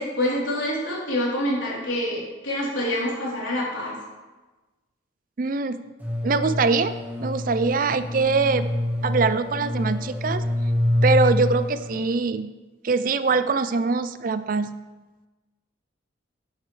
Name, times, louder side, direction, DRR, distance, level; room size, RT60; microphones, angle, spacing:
voice 1, 0.0-3.9, left 1 dB, 90° left, -6 dB, 3.6 m, -26 dB
voice 2, 5.4-5.8 6.2-6.9 7.2-8.7 9.0-10.5 11.0-12.5 12.8-14.7, right 4 dB, 45° right, 13 dB, 0.4 m, -23 dB
sound 1, 6.0-12.0, left 1 dB, 10° right, 1.1 m, -26 dB
11.5 x 8.2 x 3.3 m, 1.2 s
head